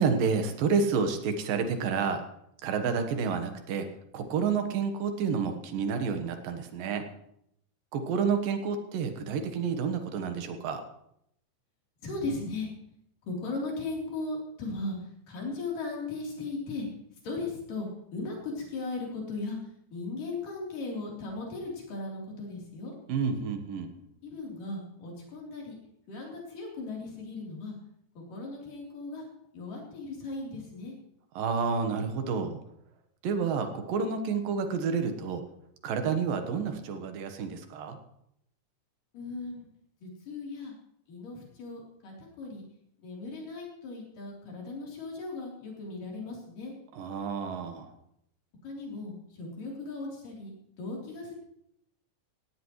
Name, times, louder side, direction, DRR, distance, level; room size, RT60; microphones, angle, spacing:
voice 1, 0.0-2.2 2.6-3.9 4.1-7.1 7.9-10.8 23.1-23.9 31.3-32.6 33.2-35.4 35.8-38.0 46.9-47.9, right 5 dB, 85° right, 6 dB, 3.1 m, -29 dB
voice 2, 12.0-12.7 13.2-15.0 15.3-16.9 17.2-19.6 19.9-22.9 24.2-25.8 26.1-27.8 28.2-29.3 29.5-30.9 39.1-39.7 40.0-40.7 41.1-42.6 43.0-46.7 48.6-50.5 50.8-51.3, left 3 dB, 75° left, -2 dB, 5.2 m, -37 dB
18.0 x 16.5 x 3.2 m, 0.74 s
omnidirectional pair, 3.9 m